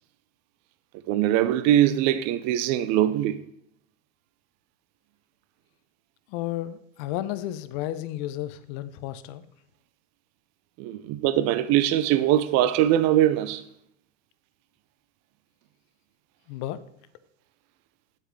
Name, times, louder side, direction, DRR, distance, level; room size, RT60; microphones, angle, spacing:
voice 1, 1.1-3.4 10.8-13.6, right 12 dB, 45° right, 0.5 m, -22 dB
voice 2, 6.3-9.4 16.5-16.8, left 13 dB, 55° left, 0.8 m, -32 dB
9.2 x 7.8 x 3.2 m
hypercardioid pair, 90°, 38 cm